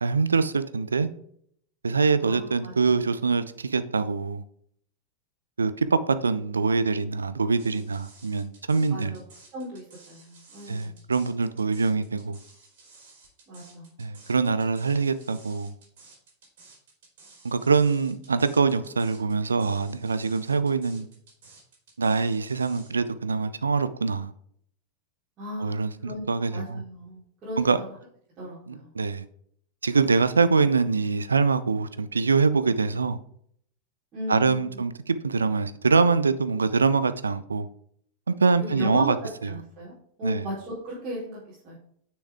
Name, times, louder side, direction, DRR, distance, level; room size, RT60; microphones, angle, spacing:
voice 1, 0.0-1.1 1.8-4.4 5.6-9.1 10.7-12.4 14.0-15.7 17.4-21.1 22.0-24.3 25.6-26.8 27.6-27.8 28.7-29.2 29.8-33.2 34.3-37.7 38.3-39.2 40.2-40.4, right 4 dB, 75° right, 0.6 m, -24 dB
voice 2, 2.2-3.0 8.9-9.2 9.5-11.0 13.5-13.9 25.4-26.2 26.5-27.9 28.4-28.9 34.1-34.8 38.6-41.8, equal, 30° right, 4.1 m, -36 dB
sound 1, 7.6-22.9, right 3 dB, 55° right, 4.0 m, -53 dB
9.9 x 6.3 x 3.5 m
figure-of-eight pair, 90°, 0 cm